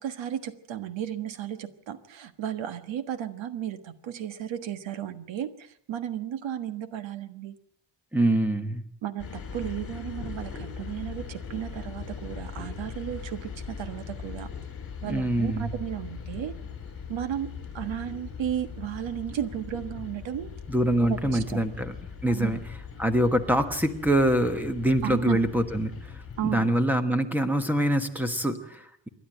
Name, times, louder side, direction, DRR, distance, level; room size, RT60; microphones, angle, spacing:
voice 1, 0.0-7.5 9.0-14.5 15.0-16.6 17.1-20.5 21.0-21.6 22.3-22.6 25.0-25.4 26.4-26.7, right 10 dB, 85° right, 11 dB, 1.6 m, -34 dB
voice 2, 8.1-8.8 15.0-15.7 20.7-21.9 22.2-22.6 23.0-25.9 26.4-29.1, right 1 dB, 5° right, 9 dB, 1.3 m, -24 dB
sound 1, 9.2-26.6, left 6 dB, 30° left, 3.8 m, -40 dB
27.0 x 11.5 x 8.8 m, 0.68 s
wide cardioid pair, 175°, 44 cm